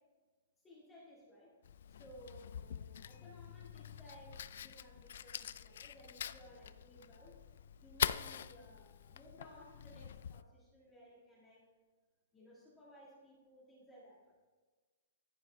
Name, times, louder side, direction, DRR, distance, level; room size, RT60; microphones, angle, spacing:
voice 1, 0.6-1.6 1.9-7.4 7.8-11.7 12.3-14.3, equal, 10° left, -6 dB, 1.7 m, -59 dB
Fire, 1.6-10.4, left 9 dB, 55° left, 0.3 m, -44 dB
14.0 x 5.6 x 3.3 m, 1.3 s
hypercardioid pair, 175°, 0 cm